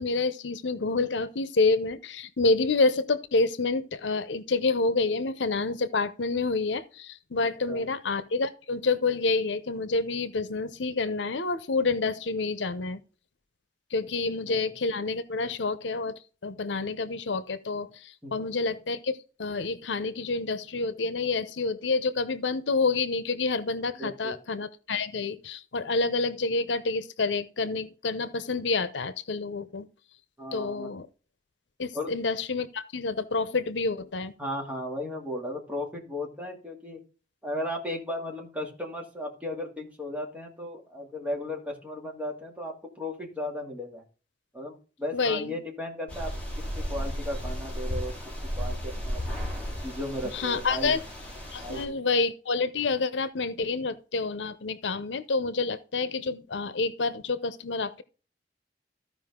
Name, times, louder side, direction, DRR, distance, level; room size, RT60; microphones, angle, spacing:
voice 1, 0.0-13.0 13.9-29.9 30.5-31.1 31.8-34.3 45.1-45.6 50.3-51.0 51.5-58.0, left 3 dB, 85° left, 0.8 m, -28 dB
voice 2, 7.4-7.9 14.5-14.7 18.2-18.3 23.9-24.4 30.4-30.9 31.9-32.1 34.4-37.0 37.4-44.0 44.5-48.1 48.6-49.4 49.8-50.9 51.6-52.1, left 1 dB, 10° right, 2.3 m, -36 dB
sound 1, 46.1-51.8, equal, 5° left, 3.2 m, -34 dB
14.5 x 5.2 x 3.7 m
head